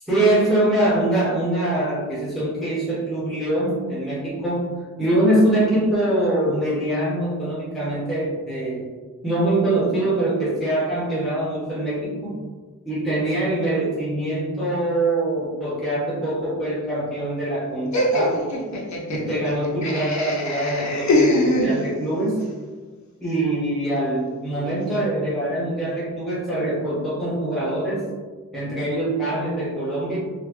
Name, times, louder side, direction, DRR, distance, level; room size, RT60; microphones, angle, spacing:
voice 1, 0.1-4.7 5.0-8.9 9.2-12.4 12.8-18.4 19.1-22.4 23.2-28.1 28.5-30.2, right 1 dB, ahead, -9 dB, 1.1 m, -23 dB
Laughter, 17.9-22.2, left 1 dB, 60° left, 0.7 m, -23 dB
4.2 x 2.1 x 3.0 m, 1.4 s
wide cardioid pair, 115°, 32 cm